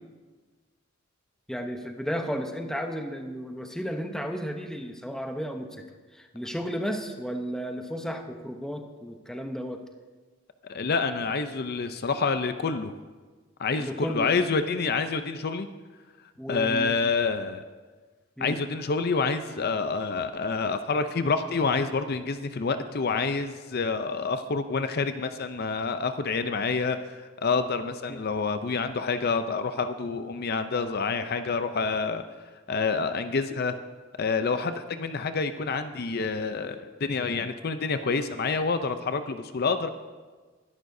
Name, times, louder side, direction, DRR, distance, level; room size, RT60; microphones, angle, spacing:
voice 1, 1.5-5.9 6.1-9.8 13.8-14.4 16.4-17.0 18.4-18.6 28.1-28.2, equal, 5° left, 4 dB, 0.8 m, -33 dB
voice 2, 10.6-12.9 13.6-15.7 16.5-17.6 18.4-32.2 32.7-33.7 34.2-39.9, left 4 dB, 50° left, 9 dB, 0.5 m, -28 dB
22.0 x 11.0 x 2.7 m, 1.4 s
head